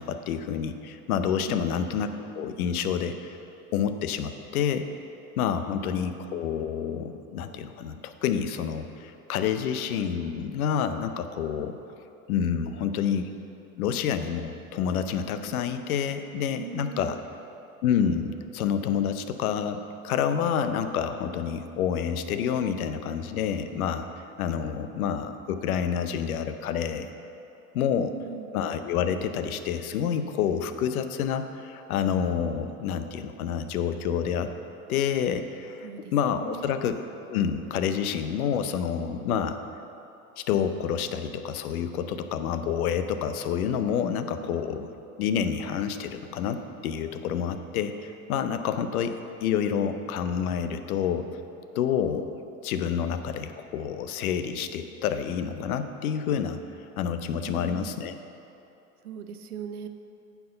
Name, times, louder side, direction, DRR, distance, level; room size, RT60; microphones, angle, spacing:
voice 1, 0.0-2.1 2.3-3.4 3.7-4.9 5.4-11.7 12.3-13.3 13.8-17.2 17.8-24.1 24.4-27.1 27.7-28.1 28.5-34.5 34.9-37.0 37.3-39.6 40.4-44.9 45.2-49.1 49.4-51.3 51.7-52.3 52.6-56.6 57.0-58.1, left 8 dB, 75° left, 9 dB, 0.7 m, -28 dB
voice 2, 1.5-1.9 5.7-5.8 16.6-17.2 27.9-28.5 35.8-36.1 36.4-36.8 44.0-44.6 57.4-57.9 59.0-59.9, right 7 dB, 90° right, 8 dB, 0.7 m, -40 dB
9.3 x 4.7 x 6.7 m, 2.8 s
hypercardioid pair, 85°, 43 cm